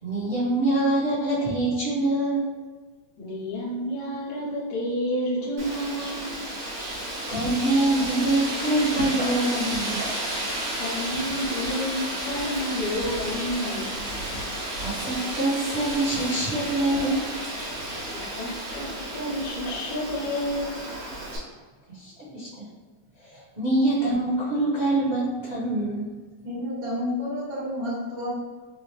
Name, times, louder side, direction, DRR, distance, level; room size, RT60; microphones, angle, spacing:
voice 1, 0.0-2.4 7.3-10.1 14.8-17.3 21.9-22.7 23.2-26.1, right 2 dB, 35° right, -13 dB, 1.0 m, -25 dB
voice 2, 3.2-6.4 10.8-14.0 18.1-20.8, left 1 dB, 70° left, -9 dB, 2.0 m, -30 dB
Wind, 5.6-21.4, right 1 dB, 75° right, 2.3 m, -32 dB
voice 3, 26.4-28.3, left 1 dB, 55° right, -7 dB, 1.6 m, -30 dB
5.0 x 2.1 x 3.2 m, 1.4 s
omnidirectional pair, 3.3 m